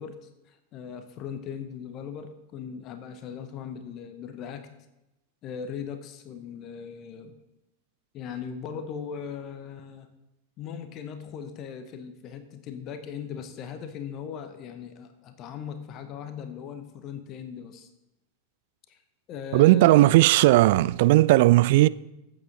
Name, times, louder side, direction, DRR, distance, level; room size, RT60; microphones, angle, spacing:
voice 1, 0.0-4.7 5.4-7.4 8.1-10.1 10.6-17.9 18.9-19.0 19.3-20.1, left 7 dB, 35° left, 1.0 m, -39 dB
voice 2, 19.5-21.9, right 17 dB, 50° right, 0.3 m, -17 dB
14.5 x 8.6 x 3.9 m
figure-of-eight pair, 90°, 0 cm